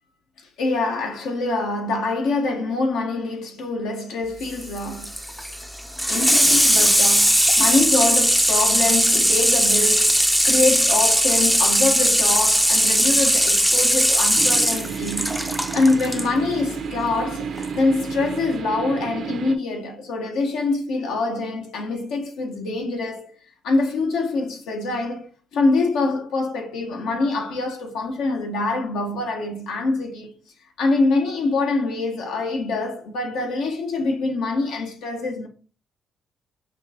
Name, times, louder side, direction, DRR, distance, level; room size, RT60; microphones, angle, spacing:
voice 1, 0.6-5.1 6.1-15.4 15.7-23.3 23.6-30.3 30.8-35.5, left 3 dB, 90° left, 1.1 m, -24 dB
Water tap faucet / Sink (filling or washing), 4.4-16.3 17.6-17.7, equal, ahead, 0.4 m, -19 dB
sound 1, 14.4-19.6, right 7 dB, 65° right, 0.6 m, -31 dB
6.1 x 2.5 x 2.8 m
cardioid pair, 90°, 0 cm